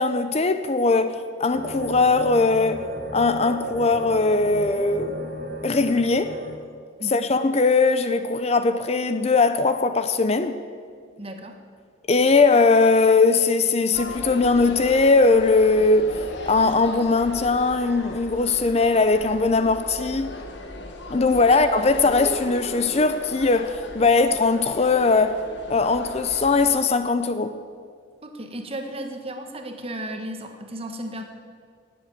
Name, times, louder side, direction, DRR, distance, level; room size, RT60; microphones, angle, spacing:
voice 1, 0.0-2.9 3.1-5.2 5.6-6.4 7.1-10.6 12.1-20.4 21.1-25.4 25.7-27.6, left 3 dB, 35° left, 0.5 m, -20 dB
sound 1, 1.5-6.5, right 1 dB, 55° right, 2.5 m, -34 dB
voice 2, 7.0-7.3 11.2-11.6 21.5-21.6 28.2-31.2, right 1 dB, 30° right, 1.4 m, -34 dB
sound 2, 13.9-26.7, left 1 dB, 65° left, 1.6 m, -37 dB
18.5 x 7.8 x 8.7 m
head